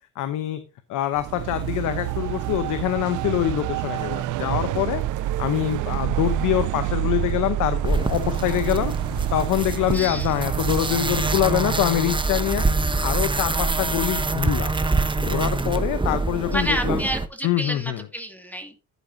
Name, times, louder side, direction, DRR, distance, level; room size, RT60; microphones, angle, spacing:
voice 1, 0.2-0.6 0.9-5.0 5.4-8.9 9.3-12.7 13.0-14.7 15.2-17.0 17.4-18.0, left 13 dB, 90° left, 10 dB, 0.9 m, -25 dB
sound 1, 1.1-11.9, right 15 dB, 80° right, 0.5 m, -28 dB
sound 2, 7.8-17.3, right 3 dB, 15° right, 1.0 m, -25 dB
voice 2, 9.9-10.4 16.5-18.7, equal, 5° left, 5 dB, 2.2 m, -29 dB
11.5 x 9.3 x 2.7 m, 0.30 s
cardioid pair, 90°, 30 cm